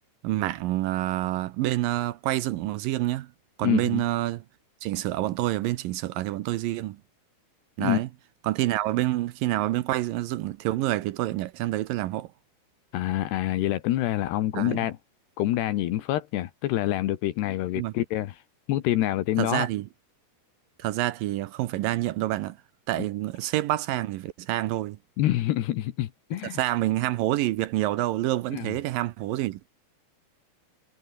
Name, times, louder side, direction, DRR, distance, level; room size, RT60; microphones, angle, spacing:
voice 1, 0.2-3.3 3.6-4.4 4.8-7.0 7.8-8.1 8.4-12.3 14.5-14.9 17.8-17.9 19.4-19.9 20.8-22.6 22.9-25.0 26.6-29.7, right 16 dB, 75° right, 2.1 m, -27 dB
voice 2, 3.6-4.0 7.8-8.0 12.9-15.0 15.4-18.4 18.7-19.7 25.2-26.6 28.5-28.7, left 14 dB, 80° left, 3.3 m, -26 dB
omnidirectional pair, 4.9 m